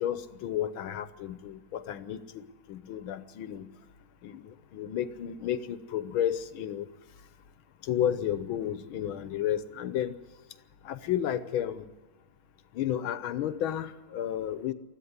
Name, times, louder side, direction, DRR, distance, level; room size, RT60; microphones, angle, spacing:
voice 1, 0.0-3.7 4.2-6.9 7.8-10.2 10.8-11.9 12.7-14.7, left 10 dB, 75° left, 13 dB, 1.6 m, -32 dB
20.0 x 14.0 x 9.6 m, 1.2 s
omnidirectional pair, 2.3 m